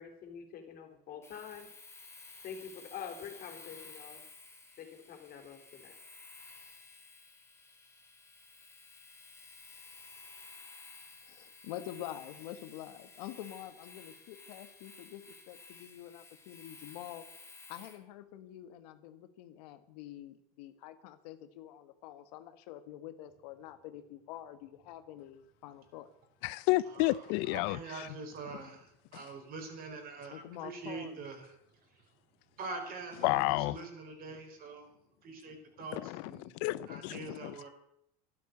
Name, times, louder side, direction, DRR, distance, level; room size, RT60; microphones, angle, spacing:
voice 1, 0.0-1.7 2.4-4.2 4.8-5.9, left 7 dB, 50° left, 3.8 m, -46 dB
Domestic sounds home sounds, 1.2-18.0, left 3 dB, 15° left, 2.4 m, -54 dB
voice 2, 11.2-17.2 17.7-26.1 30.3-31.2, left 12 dB, 85° left, 1.5 m, -47 dB
voice 3, 26.4-28.1 29.1-29.3 33.2-33.8 35.9-37.5, left 19 dB, 70° left, 0.5 m, -31 dB
voice 4, 27.4-31.5 32.6-34.9 35.2-36.5 36.9-37.7, right 3 dB, 45° right, 4.5 m, -44 dB
13.0 x 11.5 x 8.4 m
supercardioid pair, 125°, 20 cm